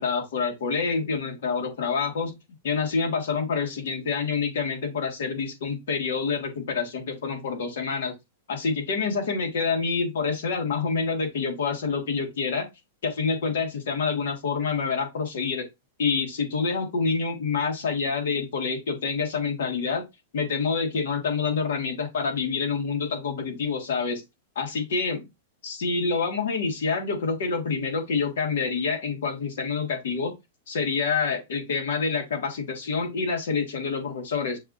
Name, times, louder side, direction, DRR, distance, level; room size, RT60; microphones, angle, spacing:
voice 1, 0.0-2.3 2.6-8.1 8.5-12.7 13.0-15.7 16.0-20.0 20.3-24.2 24.5-25.3 25.6-30.3 30.7-34.6, left 5 dB, 80° left, 1.5 m, -27 dB
6.5 x 2.5 x 2.5 m
supercardioid pair, 165°, 0 cm